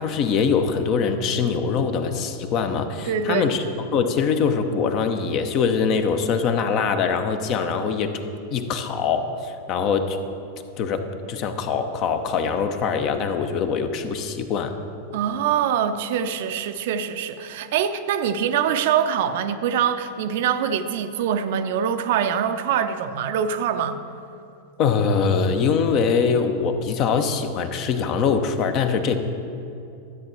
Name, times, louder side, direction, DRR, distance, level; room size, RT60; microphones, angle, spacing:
voice 1, 0.0-3.6 3.9-8.1 8.5-10.2 10.8-14.7 24.8-29.2, left 6 dB, 40° left, 8 dB, 0.8 m, -23 dB
voice 2, 3.1-3.5 15.1-24.0, right 8 dB, 55° right, 10 dB, 0.6 m, -24 dB
13.5 x 8.3 x 4.5 m, 2.6 s
figure-of-eight pair, 90°, 0 cm